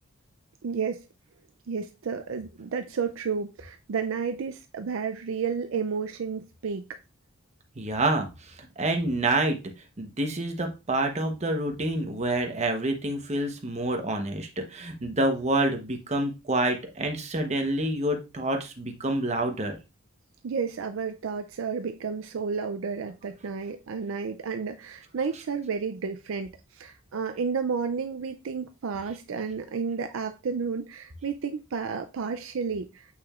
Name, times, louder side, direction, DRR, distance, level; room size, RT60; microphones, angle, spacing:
voice 1, 0.6-1.0 1.7-7.0 20.4-33.1, right 5 dB, 75° right, 0.4 m, -31 dB
voice 2, 7.8-9.6 10.0-19.8, right 1 dB, 35° right, 1.0 m, -27 dB
6.6 x 5.9 x 2.4 m
head